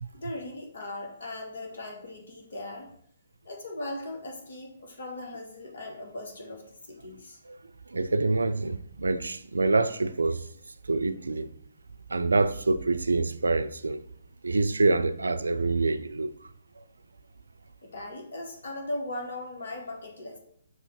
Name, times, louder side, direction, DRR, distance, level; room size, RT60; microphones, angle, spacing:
voice 1, 0.1-2.9 3.4-7.4 17.8-20.4, left 1 dB, 60° left, 1.7 m, -38 dB
voice 2, 7.9-10.5 10.8-11.5 12.1-14.0 14.4-16.3 16.8-16.9, right 3 dB, 75° right, 0.4 m, -26 dB
6.4 x 3.6 x 5.2 m
figure-of-eight pair, 130°, 0 cm